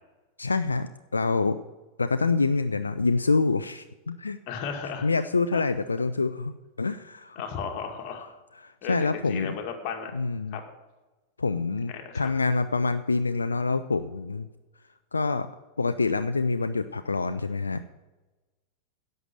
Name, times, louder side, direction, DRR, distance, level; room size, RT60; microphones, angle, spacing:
voice 1, 0.4-1.6 2.0-4.4 5.0-6.5 6.8-7.4 8.6-9.5 10.1-10.6 11.4-14.5 15.1-15.5 15.8-17.8, left 3 dB, 75° left, 11 dB, 0.4 m, -26 dB
voice 2, 4.5-5.1 5.5-5.6 7.4-8.3 8.8-10.1 10.5-10.6 11.9-12.3, left 6 dB, 40° left, 3 dB, 2.0 m, -34 dB
11.0 x 6.7 x 7.6 m, 1.2 s
figure-of-eight pair, 90°, 0 cm